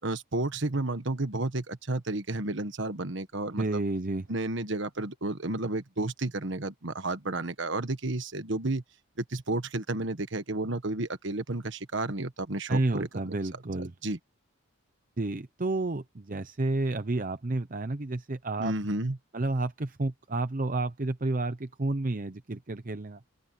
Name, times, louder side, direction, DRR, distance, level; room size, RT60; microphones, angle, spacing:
voice 1, 0.0-3.8 4.3-8.8 9.2-13.3 13.8-14.2 18.6-19.2, right 2 dB, 55° right, 1.4 m, -32 dB
voice 2, 3.6-4.3 12.7-13.9 15.2-18.7 19.3-23.2, right 2 dB, 40° right, 0.7 m, -30 dB
open air
head